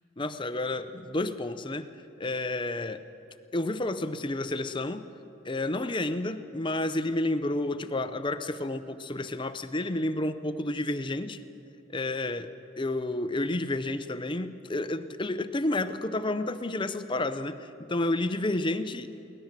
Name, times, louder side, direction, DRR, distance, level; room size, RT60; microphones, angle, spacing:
voice 1, 0.2-1.9 2.2-3.0 3.5-5.0 5.4-11.4 11.9-19.1, left 2 dB, 25° left, 11 dB, 0.6 m, -30 dB
23.0 x 18.0 x 7.4 m, 2.9 s
head